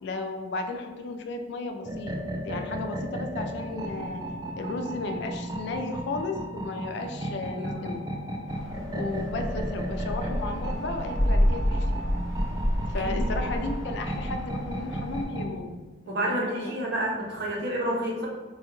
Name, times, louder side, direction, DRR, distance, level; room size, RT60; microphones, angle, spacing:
voice 1, 0.0-2.1 2.4-4.2 4.6-8.0 8.9-12.0 12.9-15.7 16.1-16.7, left 3 dB, 60° left, 6 dB, 0.3 m, -34 dB
sound 1, 1.8-15.6, right 1 dB, 20° right, 0.3 m, -35 dB
sound 2, 8.5-15.2, equal, ahead, 0.7 m, -29 dB
voice 2, 12.9-13.3 16.1-18.3, right 1 dB, 55° right, -2 dB, 0.8 m, -29 dB
4.6 x 2.2 x 2.9 m, 1.3 s
head